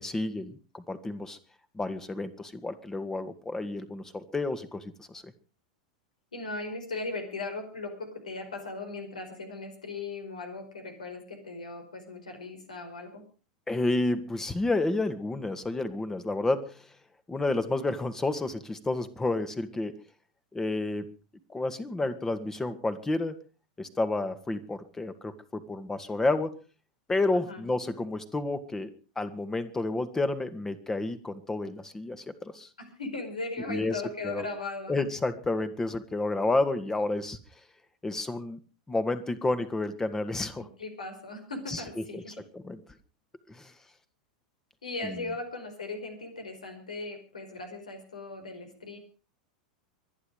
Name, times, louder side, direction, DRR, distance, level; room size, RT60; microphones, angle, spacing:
voice 1, 0.0-1.4 1.7-5.3 13.7-16.8 17.3-20.0 20.5-21.1 21.5-23.4 23.8-26.6 27.1-28.9 29.2-32.7 33.7-34.4 34.9-37.4 38.0-38.6 38.9-40.7 41.7-41.8 42.1-42.2 42.5-42.8 43.5-43.7 45.0-45.2, left 2 dB, 10° left, 11 dB, 1.9 m, -30 dB
voice 2, 6.3-13.2 27.3-27.6 32.8-35.0 40.6-42.4 44.8-49.0, left 3 dB, 80° left, 6 dB, 4.7 m, -38 dB
24.5 x 10.0 x 5.0 m, 0.35 s
figure-of-eight pair, 90°, 4 cm